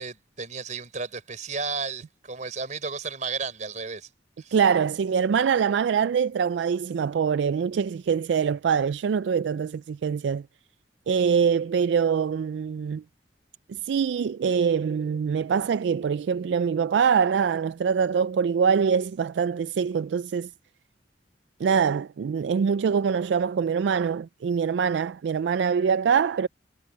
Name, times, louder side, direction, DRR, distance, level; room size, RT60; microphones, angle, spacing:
voice 1, 0.0-4.1 4.4-4.6, right 4 dB, 45° right, 4.4 m, -33 dB
voice 2, 4.5-10.5 11.1-13.0 13.7-20.5 21.6-26.5, right 6 dB, 75° right, 0.3 m, -24 dB
head